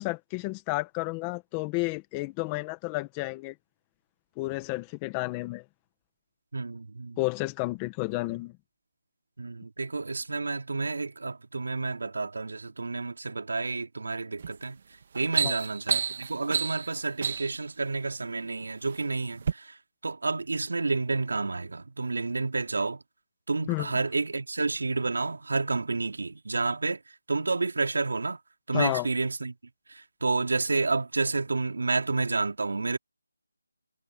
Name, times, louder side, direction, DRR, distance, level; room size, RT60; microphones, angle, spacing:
voice 1, 0.0-3.5 4.4-5.6 7.2-8.5 15.4-15.6 23.7-23.9 28.7-29.1, left 23 dB, 10° left, 1.4 m, -31 dB
voice 2, 6.5-7.2 9.4-14.8 15.1-19.8 20.0-23.0 23.5-27.0 27.3-28.4 28.7-29.5 29.9-33.0, right 3 dB, 60° right, 3.5 m, -30 dB
sound 1, 14.4-14.6 15.0-17.6 18.4-19.0 19.4-19.5, right 6 dB, 30° right, 1.6 m, -30 dB
figure-of-eight pair, 170°, 0 cm